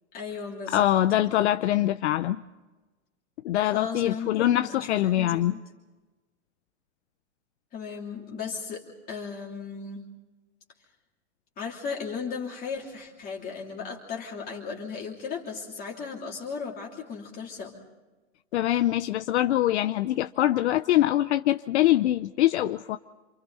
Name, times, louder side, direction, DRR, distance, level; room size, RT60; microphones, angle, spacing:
voice 1, 0.1-0.9 3.6-5.6 7.7-10.1 11.6-17.8, left 5 dB, 20° left, -2 dB, 3.1 m, -36 dB
voice 2, 0.7-2.4 3.4-5.5 18.5-23.0, left 13 dB, 60° left, 10 dB, 0.8 m, -23 dB
27.5 x 27.5 x 4.1 m, 1.2 s
hypercardioid pair, 150°, 38 cm